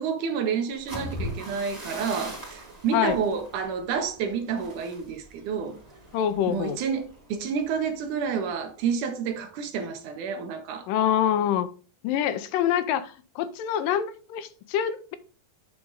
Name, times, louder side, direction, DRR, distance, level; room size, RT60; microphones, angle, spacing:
voice 1, 0.0-5.8 6.5-10.9, right 6 dB, 70° right, 2.3 m, -29 dB
sound 1, 0.7-8.6 8.9-9.3 9.6-10.0, equal, 10° right, 3.8 m, -41 dB
voice 2, 6.1-6.8 10.9-11.7 12.0-15.2, left 10 dB, 80° left, 2.3 m, -25 dB
9.5 x 5.1 x 3.9 m
omnidirectional pair, 4.0 m